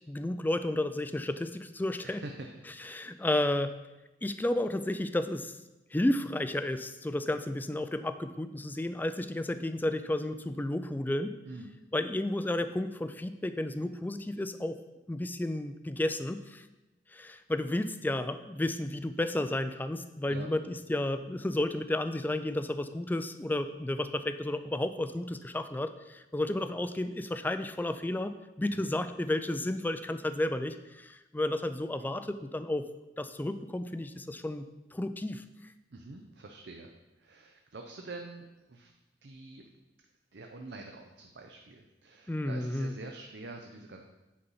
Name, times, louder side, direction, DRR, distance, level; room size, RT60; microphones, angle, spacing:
voice 1, 0.1-2.2 2.9-3.7 4.2-5.5 5.9-11.3 11.9-16.7 17.1-32.9 33.2-34.7 34.9-35.4 42.3-42.9, left 1 dB, 10° left, 10 dB, 0.3 m, -32 dB
voice 2, 2.0-2.7 11.5-11.8 20.3-20.5 28.7-28.9 35.9-38.9 39.2-39.6 40.3-44.0, right 2 dB, 75° right, 3 dB, 0.6 m, -46 dB
8.5 x 4.0 x 5.5 m, 1.0 s
head